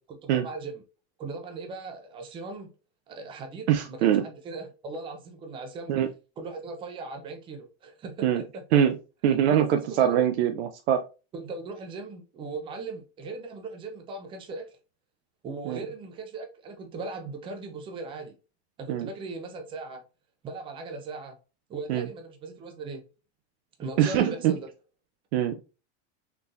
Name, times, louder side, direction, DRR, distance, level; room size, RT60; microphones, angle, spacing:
voice 1, 0.2-0.8 1.2-2.7 3.1-5.9 6.4-8.8 9.5-10.2 11.3-14.7 15.4-18.3 18.8-20.0 20.4-21.4 21.7-23.0 23.8-24.7, right 3 dB, 15° right, 0.4 m, -38 dB
voice 2, 3.7-4.2 5.9-6.1 8.2-8.4 8.7-9.0 9.2-11.0 15.7-15.8 18.9-19.1 21.9-22.1 24.0-24.5 25.3-25.6, right 10 dB, 75° right, 0.5 m, -23 dB
3.8 x 2.4 x 2.6 m
supercardioid pair, 150°, 34 cm